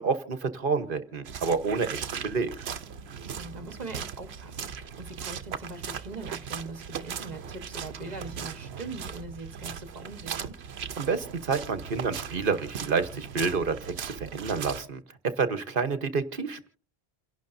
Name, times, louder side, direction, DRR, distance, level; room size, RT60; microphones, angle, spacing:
voice 1, 0.0-2.5 11.0-15.0 15.3-16.7, right 4 dB, 55° right, 11 dB, 1.2 m, -29 dB
sound 1, 1.2-14.9, right 7 dB, 80° right, 1.1 m, -38 dB
voice 2, 3.3-10.6, right 3 dB, 40° right, 9 dB, 1.4 m, -41 dB
28.5 x 11.5 x 2.6 m, 0.39 s
omnidirectional pair, 1.1 m